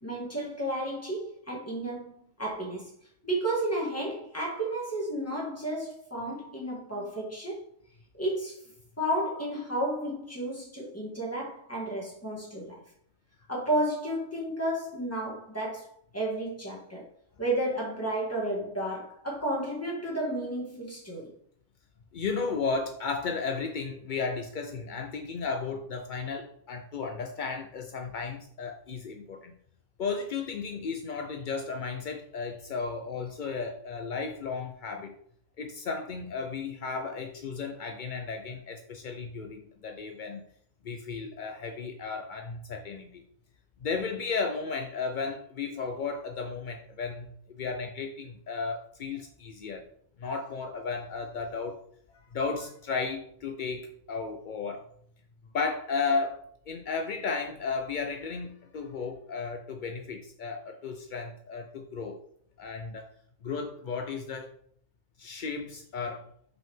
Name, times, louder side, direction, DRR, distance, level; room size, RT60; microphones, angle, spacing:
voice 1, 0.0-2.9 3.2-7.6 8.1-8.6 9.0-12.8 13.5-15.9 16.1-17.0 17.4-21.3, right 1 dB, 10° left, -3 dB, 1.9 m, -32 dB
voice 2, 22.1-29.5 30.0-35.2 35.6-40.5 40.8-43.2 43.8-49.8 50.2-51.8 52.3-54.8 55.5-56.4 56.7-62.2 62.6-63.1 63.4-64.5 65.2-66.2, left 4 dB, 65° left, 4 dB, 0.4 m, -34 dB
5.5 x 5.4 x 3.6 m, 0.63 s
omnidirectional pair, 1.5 m